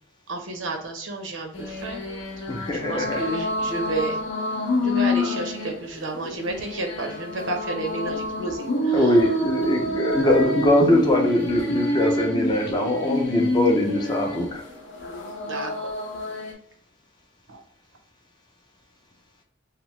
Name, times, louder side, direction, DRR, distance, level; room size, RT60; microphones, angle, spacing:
voice 1, 0.3-2.0 2.4-2.5 2.7-4.2 4.8-9.1 15.4-15.9 17.5-17.6, right 2 dB, 75° right, 4 dB, 0.7 m, -31 dB
sound 1, 1.5-16.5, left 1 dB, 75° left, 0.6 m, -28 dB
voice 2, 2.5-3.3 8.9-14.6, left 1 dB, 20° left, 2 dB, 0.4 m, -22 dB
2.8 x 2.0 x 3.0 m, 0.63 s
head